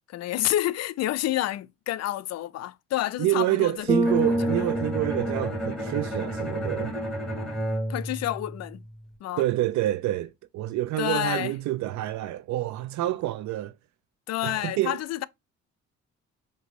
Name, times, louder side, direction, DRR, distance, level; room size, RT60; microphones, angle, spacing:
voice 1, 0.1-3.9 4.2-4.3 7.9-8.8 9.2-9.4 11.0-11.5 14.3-15.2, left 14 dB, 60° left, 0.5 m, -29 dB
voice 2, 3.2-7.0 9.4-13.7 14.4-15.0, right 15 dB, 75° right, 0.5 m, -27 dB
Bass guitar, 3.9-6.2, equal, 15° right, 0.9 m, -28 dB
Bowed string instrument, 4.0-9.0, right 1 dB, ahead, 2.9 m, -32 dB
5.1 x 2.7 x 3.1 m
cardioid pair, 80°, 29 cm